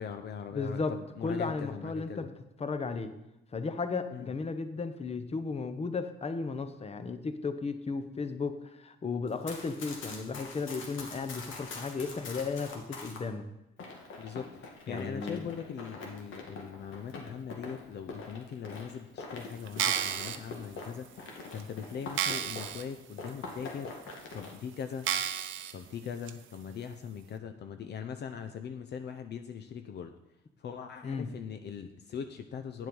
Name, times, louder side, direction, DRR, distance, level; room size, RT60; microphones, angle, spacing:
voice 1, 0.0-2.3 4.1-4.3 14.2-23.9 24.3-25.1 25.7-30.1 30.6-32.9, left 7 dB, 60° left, 7 dB, 0.7 m, -41 dB
voice 2, 0.5-0.9 1.2-2.3 2.6-3.1 3.5-13.5 14.9-15.5 31.0-31.3, left 4 dB, 30° left, 9 dB, 1.0 m, -35 dB
Run, 9.3-13.2 13.8-22.9 23.2-24.5, left 3 dB, 80° left, 2.0 m, -44 dB
sound 1, 19.7-20.4 21.0-21.1 21.6-21.7 22.1-22.8 23.3-23.4 24.1-24.2 25.0-25.7 26.3-26.4, right 10 dB, 80° right, 0.7 m, -31 dB
9.4 x 7.5 x 5.4 m, 0.90 s
cardioid pair, 90°, 20 cm